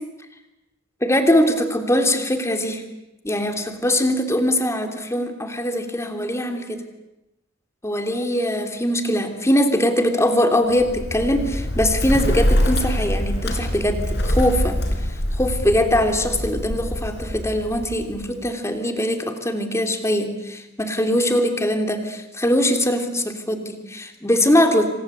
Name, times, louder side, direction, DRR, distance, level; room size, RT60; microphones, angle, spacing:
voice 1, 1.0-2.8 3.2-6.8 7.8-14.8 15.4-24.9, left 1 dB, 15° left, 6 dB, 3.2 m, -21 dB
Bird, 10.7-18.5, equal, 60° left, 4.9 m, -24 dB
27.5 x 25.0 x 8.3 m, 0.93 s
head